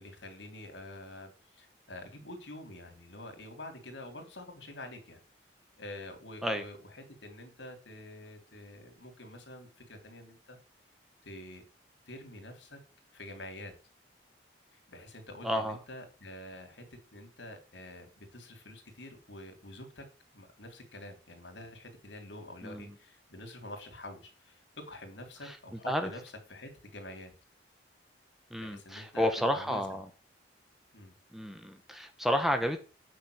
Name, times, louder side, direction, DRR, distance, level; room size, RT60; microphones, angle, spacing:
voice 1, 0.0-5.2 5.8-10.6 11.2-11.6 12.1-12.8 13.1-13.7 14.9-16.8 17.1-27.3 28.6-30.0 30.9-31.1, left 1 dB, 75° left, 5 dB, 3.3 m, -47 dB
voice 2, 15.4-15.8 22.6-22.9 25.4-25.6 25.9-26.1 28.5-30.1 31.3-32.8, equal, ahead, 6 dB, 1.2 m, -31 dB
9.4 x 6.3 x 6.5 m, 0.33 s
head